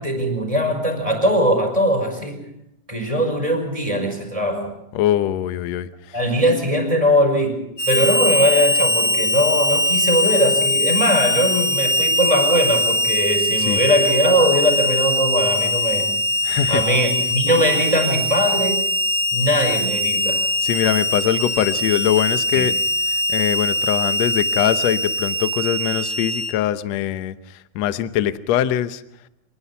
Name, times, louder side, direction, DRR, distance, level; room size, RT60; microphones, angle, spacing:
voice 1, 0.0-2.4 2.9-4.7 6.1-16.1 16.7-18.8 19.3-20.4 22.5-22.7, equal, 10° right, 2 dB, 4.7 m, -20 dB
voice 2, 4.9-5.9 13.7-13.8 16.4-16.8 20.6-22.7 23.1-27.4 27.8-29.0, left 11 dB, 70° left, 12 dB, 1.7 m, -22 dB
Harmonica, 7.8-26.5, left 1 dB, 25° left, 2.4 m, -21 dB
26.0 x 20.0 x 5.6 m, 0.82 s
omnidirectional pair, 4.1 m